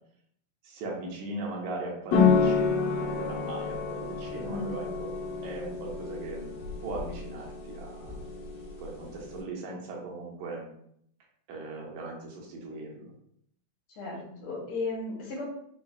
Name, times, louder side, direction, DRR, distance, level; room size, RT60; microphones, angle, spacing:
voice 1, 0.6-5.1 5.4-6.5 6.8-8.2 8.8-10.6 11.5-13.1, right 2 dB, 75° right, -2 dB, 2.0 m, -39 dB
sound 1, 2.1-9.4, left 5 dB, 90° left, 2.4 m, -29 dB
voice 2, 4.4-4.7 8.2-8.3 14.0-15.4, left 3 dB, 65° left, -4 dB, 1.4 m, -35 dB
5.5 x 2.1 x 2.3 m, 0.69 s
omnidirectional pair, 3.5 m